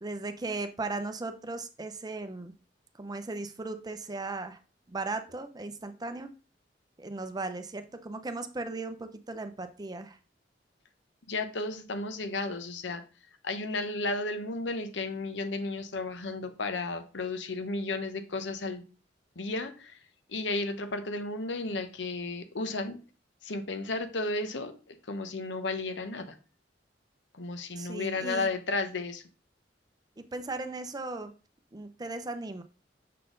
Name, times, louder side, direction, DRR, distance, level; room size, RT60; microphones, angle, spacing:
voice 1, 0.0-2.5 3.0-4.6 4.9-6.3 7.0-10.2 27.8-28.5 30.2-31.3 31.7-32.6, right 3 dB, 20° right, 9 dB, 0.5 m, -37 dB
voice 2, 11.3-13.0 13.4-18.8 19.4-20.0 20.3-23.0 23.4-26.4 27.3-29.2, left 3 dB, 85° left, 9 dB, 0.9 m, -33 dB
6.6 x 4.1 x 3.8 m, 0.33 s
head